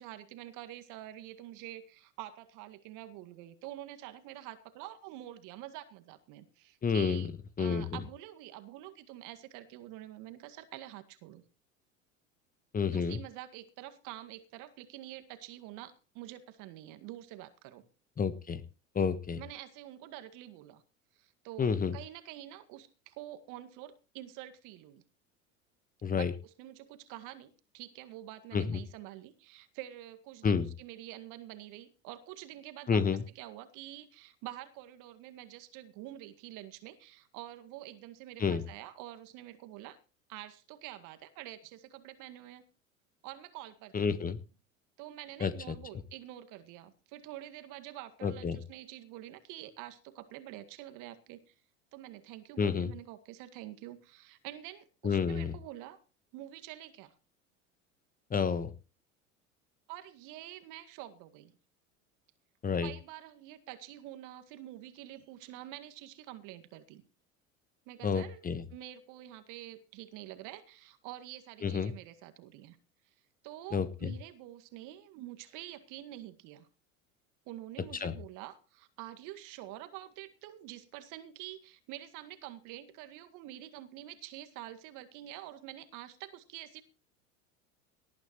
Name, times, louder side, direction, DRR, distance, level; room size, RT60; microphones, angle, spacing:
voice 1, 0.0-7.3 7.6-11.4 12.9-17.8 19.4-20.8 21.2-25.0 26.1-33.0 33.4-40.0 40.3-42.6 43.2-44.2 45.0-51.5 51.9-56.0 56.3-57.1 59.9-61.6 62.8-67.0 67.9-68.4 68.7-72.8 73.4-76.7 77.5-86.8, right 14 dB, 50° right, 10 dB, 2.0 m, -47 dB
voice 2, 6.8-7.3 7.6-7.9 12.7-13.2 18.2-18.6 18.9-19.4 21.6-22.0 26.0-26.3 28.5-28.8 30.4-30.7 32.9-33.2 38.4-38.6 43.9-44.4 45.4-45.7 48.2-48.6 52.6-52.9 55.0-55.5 58.3-58.7 62.6-62.9 68.0-68.6 71.6-71.9 73.7-74.1 78.0-78.1, left 6 dB, 20° left, 13 dB, 1.3 m, -30 dB
18.5 x 12.5 x 3.1 m, 0.33 s
figure-of-eight pair, 75°, 40 cm